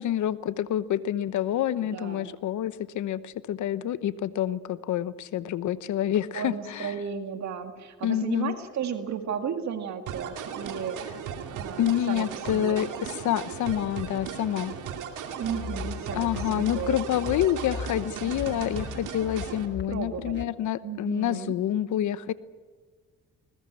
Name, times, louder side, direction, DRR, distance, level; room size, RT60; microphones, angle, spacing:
voice 1, 0.0-6.9 8.0-8.5 11.8-14.7 16.1-22.3, left 11 dB, 75° left, 15 dB, 1.0 m, -28 dB
voice 2, 1.8-2.3 6.3-11.0 11.5-12.9 15.4-17.3 19.9-20.5 20.8-21.5, right 7 dB, 65° right, 6 dB, 2.1 m, -34 dB
sound 1, 10.1-19.7, right 7 dB, 85° right, 2.7 m, -37 dB
sound 2, 15.4-20.4, left 6 dB, 35° left, 1.2 m, -39 dB
21.0 x 20.0 x 8.7 m, 1.4 s
cardioid pair, 90°, 30 cm